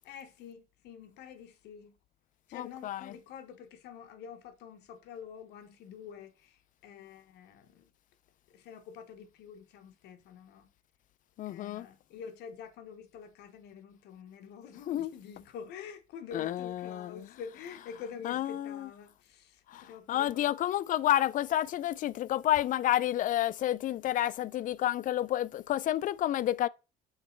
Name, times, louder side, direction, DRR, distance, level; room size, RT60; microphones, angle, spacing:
voice 1, 0.0-1.9 2.5-7.9 8.5-10.7 11.5-20.5, left 7 dB, 80° left, 1.2 m, -47 dB
voice 2, 2.5-3.1 11.4-11.9 14.9-15.1 16.3-17.3 18.2-18.9 19.7-26.7, left 12 dB, 50° left, 0.4 m, -30 dB
6.5 x 4.0 x 4.5 m
cardioid pair, 110°, 17 cm